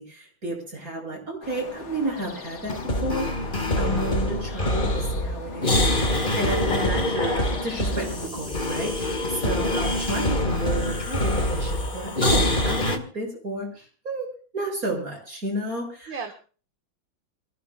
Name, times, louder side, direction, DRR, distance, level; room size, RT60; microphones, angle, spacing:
voice 1, 0.0-3.3 3.8-14.3 14.5-16.2, right 1 dB, 40° right, 0 dB, 7.9 m, -32 dB
sound 1, 1.4-8.3, left 4 dB, 45° left, 1.9 m, -41 dB
sound 2, 2.6-13.0, left 1 dB, 25° left, 2.0 m, -25 dB
voice 2, 6.9-7.7 9.7-10.3 16.1-16.3, right 5 dB, 65° right, 4 dB, 2.1 m, -37 dB
28.0 x 17.0 x 2.4 m, 0.39 s
omnidirectional pair, 2.3 m